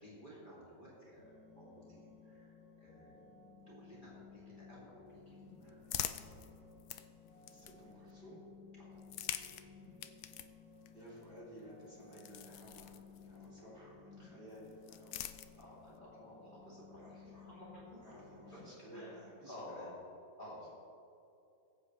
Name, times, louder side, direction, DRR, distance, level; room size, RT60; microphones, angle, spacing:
voice 1, 0.0-3.3 3.7-6.1 8.8-9.1 15.5-18.6 18.9-19.2 19.5-19.9 20.4-20.7, left 1 dB, 25° left, -8 dB, 2.8 m, -54 dB
sound 1, 1.2-18.6, left 5 dB, 90° left, 2.2 m, -58 dB
sound 2, 5.1-8.1 8.9-13.5 14.5-16.0, left 11 dB, 70° left, 0.9 m, -46 dB
voice 2, 7.5-8.4 10.9-13.0 13.2-15.3 17.0-17.4 18.0-19.9, equal, 30° right, -7 dB, 3.3 m, -54 dB
19.0 x 8.5 x 3.2 m, 2.7 s
omnidirectional pair, 2.0 m